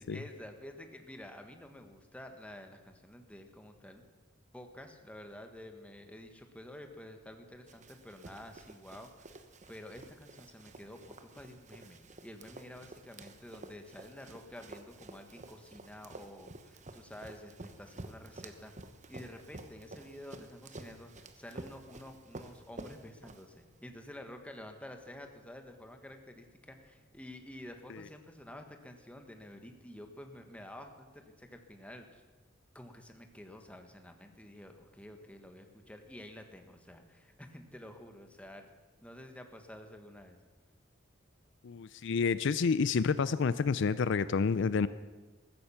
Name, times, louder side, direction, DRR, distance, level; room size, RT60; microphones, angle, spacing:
voice 1, 0.1-4.0 4.5-18.7 19.1-32.2 32.7-38.7 39.0-40.4, left 1 dB, 5° left, 5 dB, 1.4 m, -50 dB
Run, 7.7-23.8, right 2 dB, 40° right, 1.0 m, -51 dB
voice 2, 41.6-44.9, left 5 dB, 65° left, 15 dB, 0.4 m, -29 dB
14.5 x 14.0 x 5.7 m, 1.2 s
head